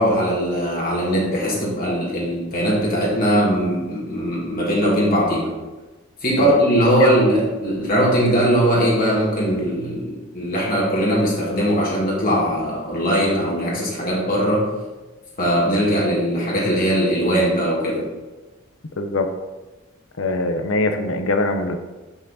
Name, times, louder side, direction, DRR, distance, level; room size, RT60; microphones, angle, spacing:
voice 1, 0.0-5.5 6.2-14.7 15.4-18.1, equal, 45° left, -5 dB, 2.0 m, -20 dB
voice 2, 6.4-7.1 19.0-19.3 20.2-21.8, left 2 dB, 75° left, 6 dB, 0.8 m, -23 dB
6.7 x 5.9 x 4.1 m, 1.2 s
head